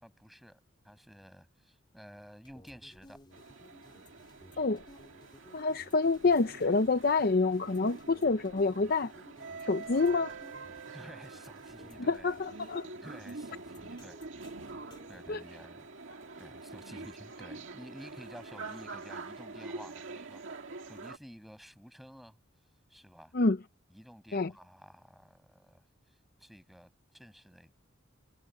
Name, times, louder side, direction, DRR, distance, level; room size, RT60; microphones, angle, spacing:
voice 1, 0.0-3.2 10.9-12.4 13.0-14.2 15.1-15.9 16.4-20.6 20.9-22.4 22.9-23.3 23.9-25.8 26.4-27.7, equal, ahead, 7.0 m, -52 dB
sound 1, 2.5-15.4, left 1 dB, 20° left, 3.3 m, -57 dB
sound 2, 3.3-21.2, right 3 dB, 65° right, 2.1 m, -46 dB
voice 2, 5.5-9.1 9.7-10.3 12.1-12.9 15.3-15.4 23.3-23.6 24.3-24.5, left 3 dB, 45° left, 0.6 m, -27 dB
head